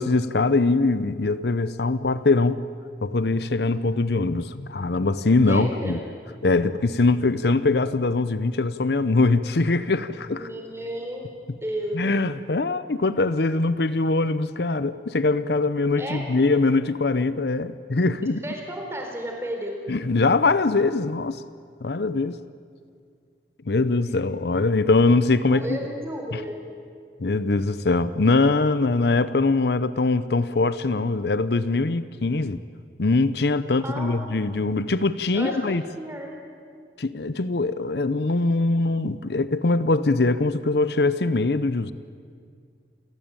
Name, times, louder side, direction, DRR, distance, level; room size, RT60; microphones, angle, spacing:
voice 1, 0.0-2.6 3.0-6.0 6.4-10.5 11.9-18.4 19.9-21.4 21.8-22.4 23.7-25.8 26.3-26.4 27.2-32.6 33.0-35.8 37.0-41.9, left 3 dB, 70° left, 14 dB, 0.7 m, -22 dB
voice 2, 5.4-6.0 10.3-11.3 11.6-12.0 16.0-16.2 18.4-19.8 25.5-26.6 33.8-34.4 35.3-36.3, equal, 15° right, 1 dB, 4.0 m, -33 dB
28.5 x 16.0 x 9.0 m, 2.2 s
head